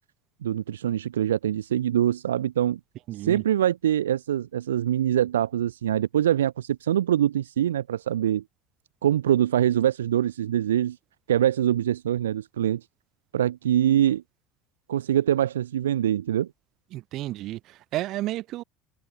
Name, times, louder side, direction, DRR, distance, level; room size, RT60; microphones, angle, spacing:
voice 1, 0.4-2.8 3.1-8.4 9.0-11.0 11.3-12.8 13.3-14.2 14.9-16.5, right 11 dB, 80° right, 1.2 m, -24 dB
voice 2, 3.1-3.4 16.9-18.6, right 16 dB, 55° right, 4.9 m, -32 dB
figure-of-eight pair, 70°, 0 cm